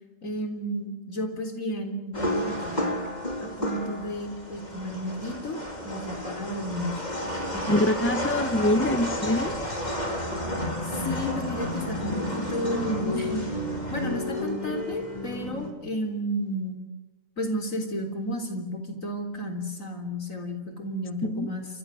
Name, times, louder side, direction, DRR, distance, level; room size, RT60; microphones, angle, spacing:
voice 1, 0.2-3.0 3.4-7.0 7.5-7.9 10.9-13.5 13.9-16.8 17.4-21.7, equal, 85° left, 5 dB, 4.1 m, -32 dB
sound 1, 2.1-15.7, left 1 dB, 30° left, 4.0 m, -31 dB
voice 2, 7.7-9.5 21.2-21.5, left 1 dB, 10° left, 10 dB, 1.2 m, -24 dB
28.0 x 25.5 x 6.5 m, 1.1 s
omnidirectional pair, 1.4 m